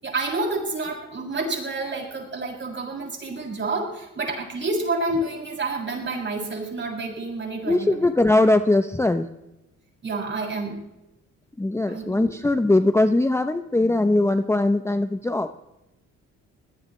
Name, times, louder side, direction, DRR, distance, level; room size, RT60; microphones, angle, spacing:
voice 1, 0.0-8.1 10.0-10.8 11.9-12.3, right 2 dB, 40° right, -1 dB, 7.0 m, -29 dB
voice 2, 7.7-9.3 11.6-15.5, left 2 dB, 10° left, 8 dB, 0.7 m, -20 dB
22.5 x 17.5 x 3.2 m, 0.91 s
cardioid pair, 90°, 30 cm